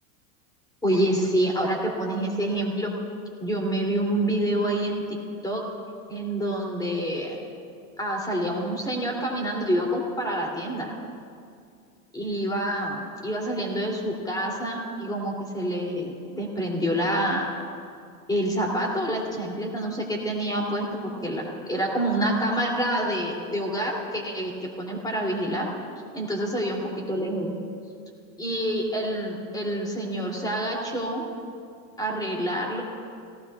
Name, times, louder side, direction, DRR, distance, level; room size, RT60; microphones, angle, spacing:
voice 1, 0.8-2.9 3.4-5.2 5.4-5.6 6.1-7.4 8.0-10.9 12.1-17.5 18.3-24.5 24.8-25.7 26.1-27.5 28.4-31.2 32.0-32.8, right 1 dB, 10° left, -1 dB, 2.8 m, -27 dB
18.5 x 16.0 x 2.4 m, 2.4 s
hypercardioid pair, 110°, 44 cm